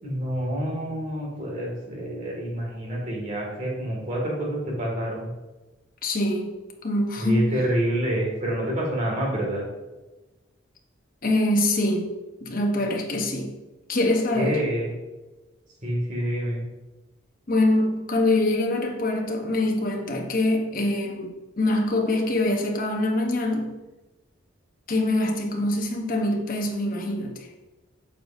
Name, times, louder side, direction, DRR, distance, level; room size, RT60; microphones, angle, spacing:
voice 1, 0.0-5.3 7.2-9.6 14.3-14.9 15.8-16.6, right 1 dB, 35° right, -2 dB, 2.1 m, -27 dB
voice 2, 6.0-6.5 6.8-7.6 11.2-12.1 12.4-13.5 13.9-14.6 17.5-23.8 24.9-27.5, left 1 dB, 40° left, 2 dB, 1.0 m, -24 dB
8.6 x 6.5 x 2.7 m, 1.1 s
head